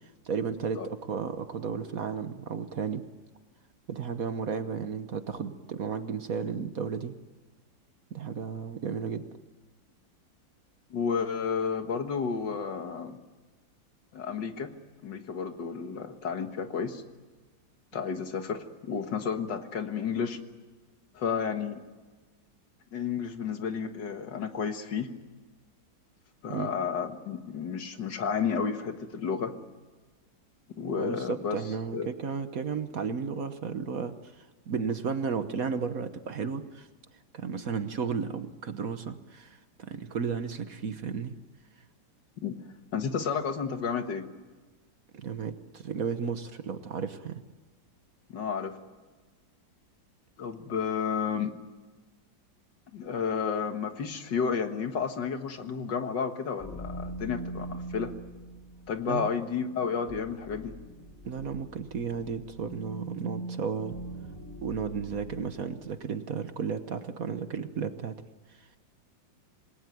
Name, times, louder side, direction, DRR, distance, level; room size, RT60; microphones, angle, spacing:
voice 1, 0.2-3.0 3.9-7.1 8.1-9.3 26.5-26.7 31.0-36.9 37.3-41.4 45.1-47.4 59.1-59.3 61.2-64.0 64.6-68.2 68.5-68.7, right 6 dB, 50° right, 9 dB, 1.4 m, -33 dB
voice 2, 10.9-13.2 14.1-14.7 15.0-17.0 17.9-20.4 21.1-21.8 22.9-25.1 26.4-29.5 30.8-31.6 31.9-32.1 42.4-42.6 42.9-44.3 48.3-48.8 50.4-51.5 52.9-58.1 58.9-60.7, left 6 dB, 70° left, 7 dB, 2.2 m, -31 dB
sound 1, 56.6-65.8, right 1 dB, 10° left, 3.5 m, -42 dB
27.0 x 20.0 x 9.4 m, 1.3 s
omnidirectional pair, 2.0 m